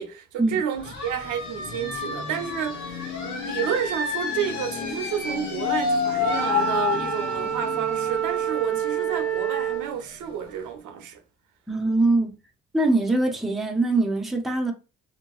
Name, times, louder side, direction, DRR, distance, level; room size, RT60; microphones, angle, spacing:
voice 1, 0.0-11.2, right 8 dB, 80° right, 0.6 m, -31 dB
sound 1, 0.8-10.3, left 5 dB, 70° left, 0.9 m, -30 dB
Wind instrument woodwind instrument, 6.2-9.9, right 8 dB, 25° right, 0.9 m, -27 dB
voice 2, 11.7-12.3 12.7-14.7, right 2 dB, ahead, 0.6 m, -22 dB
2.9 x 2.6 x 2.3 m
cardioid pair, 90°, 30 cm